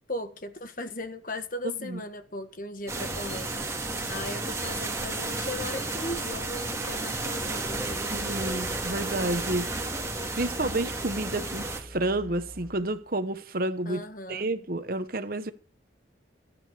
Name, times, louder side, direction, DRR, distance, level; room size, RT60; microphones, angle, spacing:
voice 1, 0.1-8.2 13.8-14.5, left 2 dB, 45° left, 1.5 m, -38 dB
sound 1, 2.9-11.8, right 2 dB, 15° right, 1.9 m, -32 dB
sound 2, 7.6-13.1, equal, 5° left, 1.6 m, -44 dB
voice 2, 7.9-9.7 10.3-15.5, right 2 dB, 50° right, 1.1 m, -30 dB
15.5 x 8.9 x 6.5 m
head